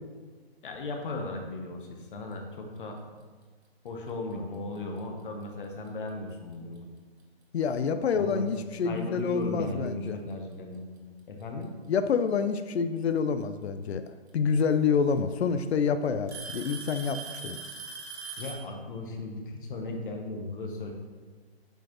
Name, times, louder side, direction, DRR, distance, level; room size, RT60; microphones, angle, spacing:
voice 1, 0.6-3.0 3.8-6.9 8.1-8.5 8.8-10.8 11.3-11.7 18.4-20.9, left 2 dB, 55° left, 3 dB, 1.1 m, -36 dB
Alarm / Tick-tock, 4.8-5.0 5.9-6.0 6.8-6.9 8.5-8.6 9.9-10.0 11.2-11.6 13.4-13.5 14.7-14.8 15.2-15.6 16.3-18.7, right 5 dB, 90° right, 1.5 m, -41 dB
voice 2, 7.5-10.2 11.9-14.0 14.3-17.6, left 6 dB, 80° left, 10 dB, 0.5 m, -27 dB
7.9 x 4.3 x 3.0 m, 1.5 s
hypercardioid pair, 160°, 32 cm